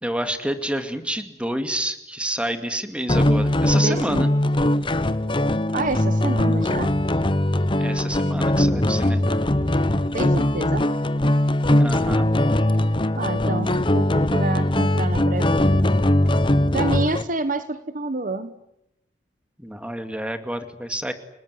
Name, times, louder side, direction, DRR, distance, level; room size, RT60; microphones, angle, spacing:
voice 1, 0.0-4.3 7.8-9.4 11.8-12.3 19.6-21.1, right 1 dB, 5° right, 8 dB, 2.3 m, -28 dB
sound 1, 3.1-17.2, left 1 dB, 30° left, 1.1 m, -20 dB
voice 2, 3.7-4.3 5.7-6.9 10.1-10.8 13.2-15.8 16.7-18.5, right 2 dB, 45° right, 12 dB, 1.3 m, -28 dB
30.0 x 20.0 x 9.6 m, 0.84 s
head